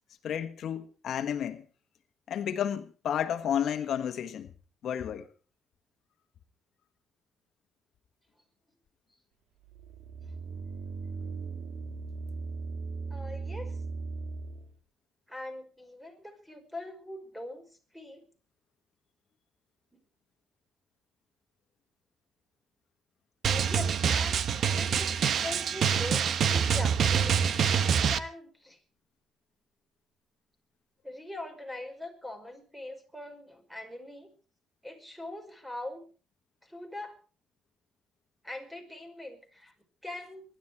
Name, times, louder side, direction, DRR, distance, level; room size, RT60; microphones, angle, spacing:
voice 1, 0.2-1.6 2.3-4.5 4.8-5.3, left 9 dB, 70° left, 1.4 m, -31 dB
sound 1, 9.6-14.7, right 4 dB, 85° right, 2.8 m, -38 dB
voice 2, 13.1-13.8 15.3-17.7 17.9-18.3 19.9-20.0 23.5-27.7 28.1-28.8 31.0-34.3 34.8-36.0 36.6-37.1 38.4-39.7 40.0-40.4, left 1 dB, 5° right, 5.4 m, -42 dB
Drum, 23.4-28.2, right 7 dB, 65° right, 1.0 m, -26 dB
24.0 x 11.5 x 4.7 m
cardioid pair, 90°, 0 cm